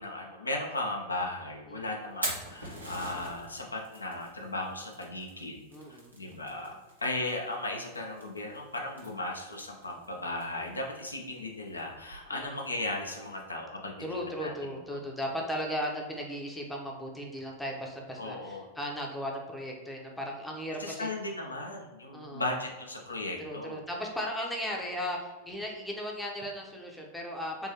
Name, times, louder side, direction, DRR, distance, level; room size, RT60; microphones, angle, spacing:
voice 1, 0.0-5.6 6.2-6.7 7.0-15.0 18.2-18.7 20.8-23.8, left 2 dB, 80° left, 1 dB, 0.5 m, -36 dB
Fire, 2.0-13.4, right 1 dB, 80° right, 1.0 m, -45 dB
voice 2, 5.7-6.1 6.6-6.7 12.3-12.6 14.0-21.1 22.1-22.4 23.4-27.7, equal, 5° left, -1 dB, 0.7 m, -36 dB
3.6 x 2.5 x 2.9 m, 1.2 s
figure-of-eight pair, 90°, 0 cm